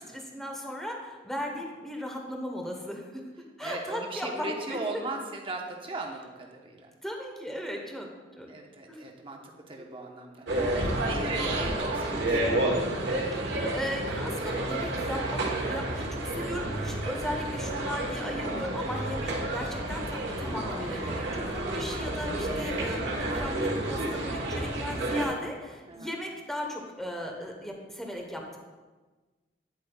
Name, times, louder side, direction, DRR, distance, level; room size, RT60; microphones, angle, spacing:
voice 1, 0.0-3.2 3.6-4.8 7.0-8.1 8.4-8.5 8.9-9.0 9.8-10.0 13.4-28.6, left 1 dB, ahead, 1 dB, 1.0 m, -37 dB
voice 2, 3.6-6.9 8.5-12.5 25.9-26.1, right 2 dB, 30° right, 1 dB, 1.0 m, -38 dB
sound 1, 10.5-25.3, right 1 dB, 85° right, 1.3 m, -30 dB
9.5 x 8.3 x 2.3 m, 1.3 s
head